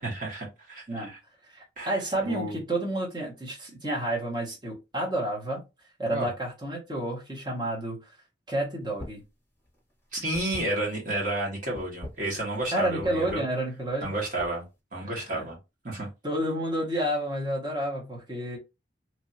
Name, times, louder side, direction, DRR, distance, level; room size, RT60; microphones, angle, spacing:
voice 1, 0.0-1.2 1.8-2.5 6.1-6.3 10.1-13.4 14.0-14.6 14.9-15.6 15.8-16.1, right 1 dB, 45° right, 1.4 m, -31 dB
voice 2, 1.4-5.6 6.0-8.1 8.5-9.2 12.7-14.1 15.0-15.5 15.9-18.6, right 1 dB, 20° right, 1.1 m, -30 dB
sound 1, 8.9-9.3 9.6-11.2 11.7-12.7 13.0-13.4 13.9-14.7, equal, 10° left, 1.3 m, -42 dB
3.0 x 2.6 x 2.7 m
head